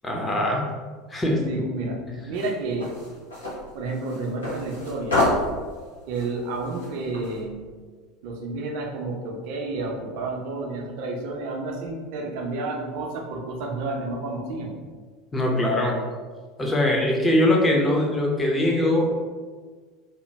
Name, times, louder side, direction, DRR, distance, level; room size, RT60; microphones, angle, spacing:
voice 1, 0.0-0.7 1.1-1.5 15.3-16.0 16.6-19.1, left 1 dB, 15° left, -1 dB, 0.7 m, -22 dB
voice 2, 1.4-2.0 2.3-2.9 3.7-5.2 6.1-7.6 8.2-14.7, right 3 dB, 55° right, 1 dB, 0.5 m, -30 dB
sound 1, 2.3-7.4, left 1 dB, 75° left, 0.8 m, -29 dB
2.9 x 2.2 x 3.2 m, 1.5 s
figure-of-eight pair, 75°, 0 cm